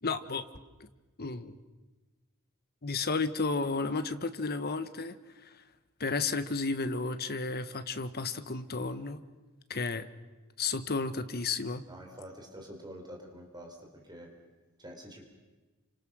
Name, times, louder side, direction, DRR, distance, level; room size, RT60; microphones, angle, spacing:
voice 1, 0.0-0.4 1.2-1.5 2.8-5.2 6.0-9.2 9.7-10.0 10.6-11.8, left 4 dB, 45° left, 11 dB, 1.3 m, -32 dB
voice 2, 11.9-14.3 14.8-15.2, equal, 20° right, 2 dB, 4.2 m, -47 dB
29.0 x 26.0 x 6.3 m, 1.2 s
head